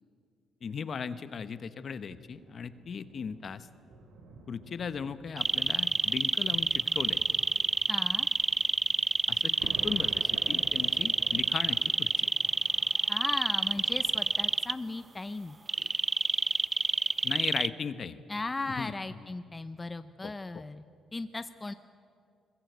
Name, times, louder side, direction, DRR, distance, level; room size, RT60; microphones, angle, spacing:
voice 1, 0.6-3.7 4.5-7.2 9.3-12.3 17.2-18.2 18.7-19.3 20.2-20.6, left 6 dB, 50° left, 13 dB, 1.0 m, -38 dB
sound 1, 2.1-14.8 15.5-15.7, right 3 dB, 80° right, 3.3 m, -51 dB
sound 2, 5.4-14.7 15.7-17.7, right 4 dB, 30° right, 0.5 m, -27 dB
voice 2, 7.9-8.3 13.1-15.6 18.3-20.8 21.1-21.7, left 3 dB, 20° left, 11 dB, 0.7 m, -37 dB
21.5 x 21.5 x 8.1 m, 2.4 s
cardioid pair, 90°, 0 cm